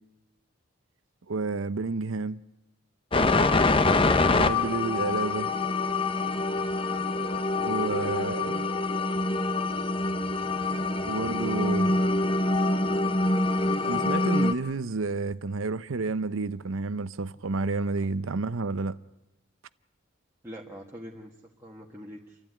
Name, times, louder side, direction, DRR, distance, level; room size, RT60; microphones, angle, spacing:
voice 1, 1.3-2.4 4.3-5.5 7.6-8.6 11.0-11.9 13.9-19.0, right 3 dB, 90° right, 0.7 m, -30 dB
sound 1, 3.1-14.5, left 2 dB, 25° left, 0.8 m, -25 dB
voice 2, 7.5-8.3 20.4-21.3 21.6-22.4, equal, 15° right, 1.5 m, -43 dB
30.0 x 12.5 x 9.4 m
head